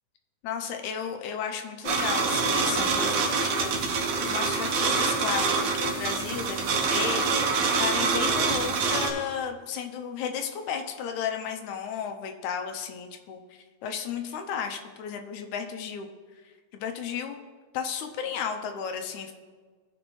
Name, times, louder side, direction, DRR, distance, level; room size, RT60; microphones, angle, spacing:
voice 1, 0.4-7.3 7.8-16.1 16.7-17.4 17.7-19.3, left 7 dB, 85° left, 5 dB, 2.1 m, -34 dB
sound 1, 1.8-9.1, right 4 dB, 70° right, 1.8 m, -25 dB
15.0 x 5.3 x 3.1 m, 1.5 s
omnidirectional pair, 3.4 m